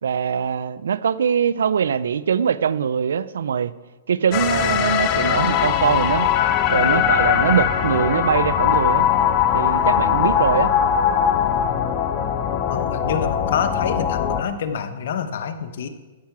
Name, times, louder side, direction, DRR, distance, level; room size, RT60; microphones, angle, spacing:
voice 1, 0.0-3.7 4.1-6.3 6.7-9.1 9.5-10.7, right 7 dB, 80° right, 0.4 m, -22 dB
sound 1, 4.3-14.4, left 9 dB, 40° left, 0.8 m, -20 dB
voice 2, 12.7-15.9, left 7 dB, 65° left, 1.0 m, -27 dB
14.5 x 5.7 x 6.0 m
hypercardioid pair, 135°, 0 cm